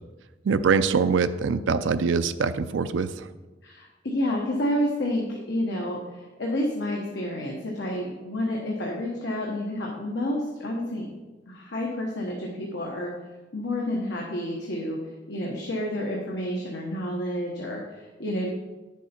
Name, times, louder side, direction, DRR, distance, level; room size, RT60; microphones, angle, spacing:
voice 1, 0.4-3.3, right 5 dB, 75° right, 10 dB, 0.4 m, -23 dB
voice 2, 3.6-11.1 11.5-13.1 13.5-15.0 15.3-18.5, left 1 dB, 65° left, -2 dB, 1.3 m, -29 dB
9.9 x 7.2 x 4.4 m, 1.2 s
head